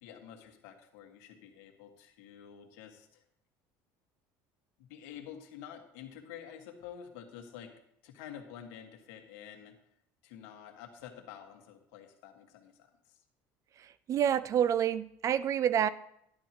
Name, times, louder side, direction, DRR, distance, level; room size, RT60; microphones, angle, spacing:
voice 1, 0.0-3.2 4.8-7.7 8.0-9.8 10.2-13.2, left 9 dB, 85° left, 4 dB, 1.7 m, -49 dB
voice 2, 14.1-15.9, right 9 dB, 45° right, 14 dB, 0.6 m, -27 dB
12.5 x 11.0 x 3.0 m, 0.74 s
cardioid pair, 115°, 8 cm